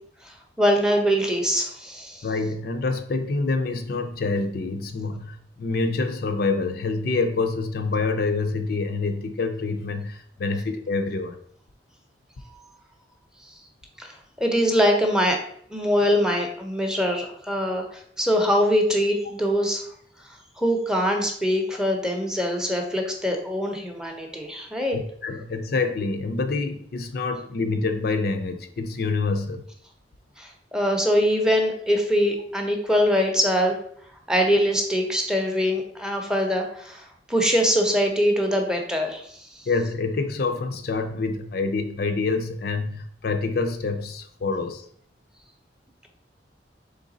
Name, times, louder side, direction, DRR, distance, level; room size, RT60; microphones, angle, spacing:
voice 1, 0.2-2.3 14.0-14.1 14.4-15.4 15.7-19.9 20.6-25.0 30.4-33.8 34.3-39.5, equal, 5° right, 2 dB, 0.6 m, -23 dB
voice 2, 2.2-11.4 24.9-29.6 39.7-44.8, left 3 dB, 55° left, 6 dB, 0.4 m, -26 dB
3.9 x 3.3 x 3.8 m, 0.65 s
head